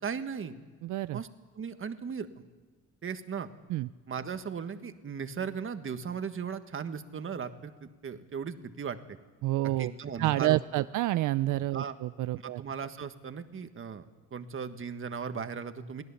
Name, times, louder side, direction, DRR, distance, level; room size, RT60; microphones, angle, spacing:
voice 1, 0.0-0.6 1.1-1.3 1.5-2.5 3.0-3.5 4.1-9.0 9.8-10.8 11.7-11.9 12.4-14.0 14.3-16.0, right 6 dB, 45° right, 9 dB, 1.5 m, -37 dB
voice 2, 0.8-1.2 3.7-3.9 9.4-9.9 10.2-12.6, right 16 dB, 80° right, 14 dB, 0.5 m, -28 dB
23.0 x 17.0 x 7.1 m, 1.4 s
cardioid pair, 90°, 30 cm